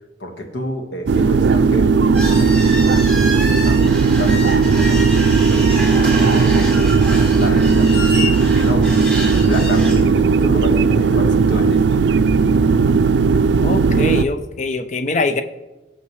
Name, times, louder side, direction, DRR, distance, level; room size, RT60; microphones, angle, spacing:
voice 1, 0.2-2.9 3.4-5.0 5.4-6.9 7.3-8.9 9.2-12.0 12.5-12.6, left 1 dB, 85° left, 4 dB, 1.5 m, -29 dB
sound 1, 1.1-14.2, right 5 dB, 80° right, 0.4 m, -15 dB
sound 2, 2.1-9.9, right 1 dB, 5° left, 3.7 m, -27 dB
voice 2, 13.6-15.4, left 3 dB, 40° left, 9 dB, 0.5 m, -22 dB
16.5 x 6.4 x 3.2 m, 1.1 s
head